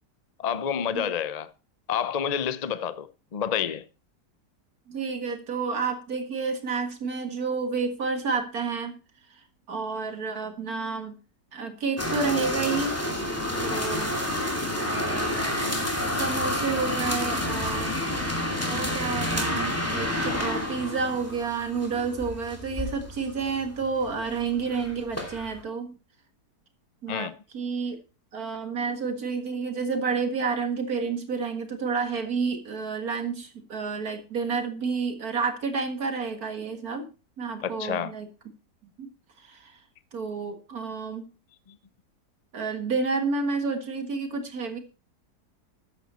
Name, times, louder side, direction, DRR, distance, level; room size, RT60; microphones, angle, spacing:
voice 1, 0.4-1.5 1.9-3.1 3.3-3.8 27.1-27.3 37.6-38.1, left 8 dB, 55° left, 0.4 m, -28 dB
voice 2, 4.9-9.0 9.7-11.2 11.5-12.9 13.6-14.2 14.7-17.9 18.7-25.9 27.0-28.0 28.3-37.1 37.4-38.3 39.0-39.1 39.4-39.8 40.1-41.3 42.5-44.8, right 5 dB, 60° right, 2.2 m, -30 dB
sound 1, 12.0-25.6, left 1 dB, 10° left, 2.5 m, -29 dB
13.5 x 8.9 x 4.2 m
omnidirectional pair, 1.8 m